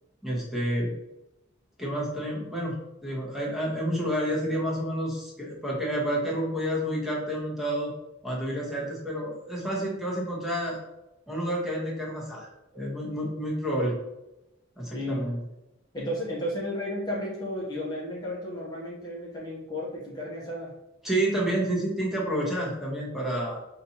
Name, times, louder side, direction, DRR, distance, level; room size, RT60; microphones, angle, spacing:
voice 1, 0.2-0.9 1.8-2.8 3.0-7.9 8.2-10.8 11.3-13.9 14.8-15.4 21.0-23.6, right 1 dB, ahead, -5 dB, 1.1 m, -29 dB
voice 2, 14.9-15.3 15.9-20.7, left 1 dB, 20° left, -6 dB, 0.9 m, -33 dB
5.2 x 2.8 x 2.9 m, 0.93 s
head